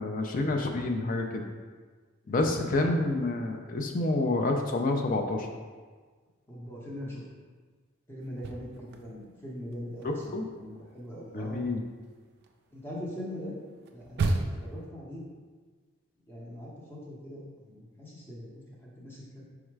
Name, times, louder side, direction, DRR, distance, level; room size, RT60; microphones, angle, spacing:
voice 1, 0.0-1.4 2.3-5.5 10.0-10.4 11.3-11.8, left 2 dB, 40° left, 3 dB, 0.4 m, -28 dB
voice 2, 2.2-2.7 6.5-7.2 8.1-11.6 12.7-13.6 13.9-15.2 16.3-18.5 18.8-19.4, equal, 10° left, -5 dB, 0.8 m, -41 dB
sound 1, 8.2-9.4 9.7-14.8, right 3 dB, 50° right, 0.3 m, -34 dB
4.8 x 2.1 x 4.6 m, 1.4 s
head